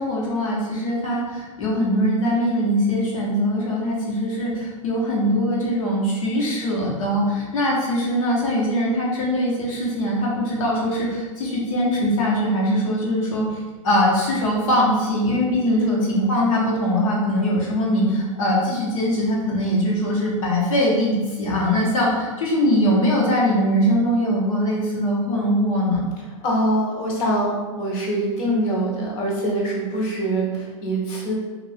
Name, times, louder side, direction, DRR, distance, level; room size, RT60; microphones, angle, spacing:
voice 1, 0.0-26.1, equal, 75° left, -3 dB, 1.2 m, -22 dB
voice 2, 15.7-16.1 26.4-31.3, right 1 dB, 45° left, -2 dB, 1.0 m, -24 dB
2.7 x 2.5 x 3.4 m, 1.3 s
hypercardioid pair, 130°, 17 cm